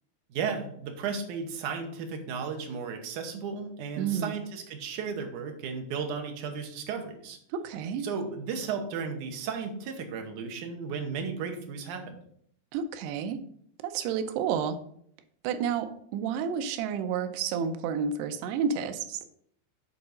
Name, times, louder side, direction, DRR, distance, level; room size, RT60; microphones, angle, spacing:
voice 1, 0.3-7.4 8.0-12.2, right 6 dB, 70° right, 4 dB, 2.0 m, -34 dB
voice 2, 4.0-4.3 7.5-8.1 12.7-13.4 13.8-14.8 15.4-19.2, right 7 dB, 90° right, 8 dB, 2.8 m, -30 dB
8.3 x 3.9 x 6.4 m, 0.67 s
omnidirectional pair, 4.6 m